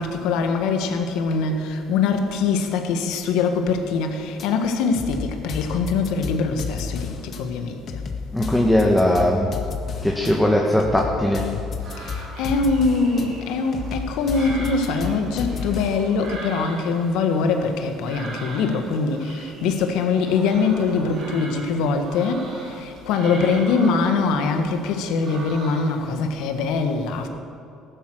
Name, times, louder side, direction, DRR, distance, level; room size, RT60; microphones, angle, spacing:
voice 1, 0.0-7.7 12.0-27.3, left 4 dB, 75° left, 6 dB, 1.6 m, -23 dB
sound 1, 4.4-4.5 4.9-7.4 7.9-10.3 10.8-13.3 13.7-16.1, left 5 dB, 50° left, 1.8 m, -32 dB
voice 2, 8.3-9.5 10.0-11.4, left 1 dB, 5° left, -1 dB, 1.8 m, -19 dB
sound 2, 11.8-26.1, right 2 dB, 60° right, 4.3 m, -40 dB
15.0 x 12.0 x 6.3 m, 2.7 s
supercardioid pair, 75°, 0 cm